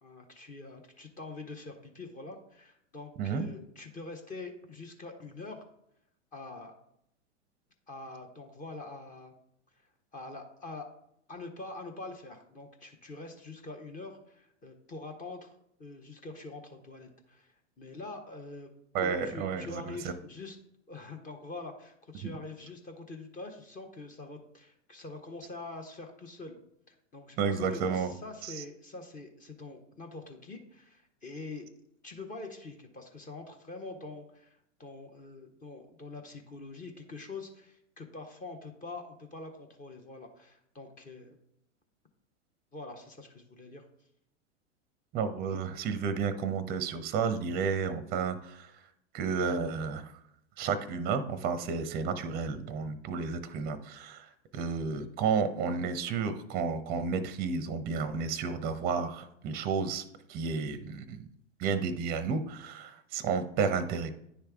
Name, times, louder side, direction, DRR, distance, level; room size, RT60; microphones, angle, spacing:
voice 1, 0.0-5.6 6.3-6.7 7.9-9.3 10.1-10.9 11.3-15.5 15.8-18.7 19.0-20.6 20.9-26.6 26.9-31.7 32.0-41.4 42.7-43.9, left 3 dB, 20° left, 4 dB, 0.8 m, -45 dB
voice 2, 18.9-20.1 22.2-22.3 27.4-28.1 28.4-28.6 45.1-48.8 49.1-50.1 50.6-61.3 61.6-64.1, right 5 dB, 25° right, 11 dB, 0.6 m, -32 dB
10.0 x 3.4 x 3.4 m, 0.76 s
hypercardioid pair, 110°, 37 cm